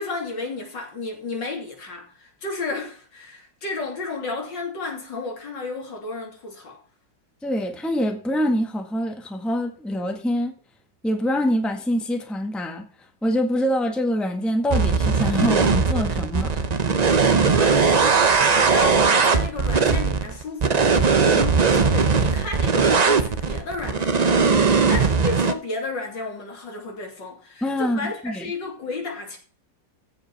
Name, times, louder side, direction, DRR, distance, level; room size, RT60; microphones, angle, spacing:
voice 1, 0.0-6.8 17.5-29.4, left 3 dB, 75° left, 3.6 m, -32 dB
voice 2, 7.4-10.5 11.0-12.9 13.2-16.6 27.6-28.5, equal, ahead, 1.4 m, -25 dB
sound 1, 14.7-25.5, right 5 dB, 55° right, 0.4 m, -19 dB
15.0 x 5.4 x 5.6 m
omnidirectional pair, 2.0 m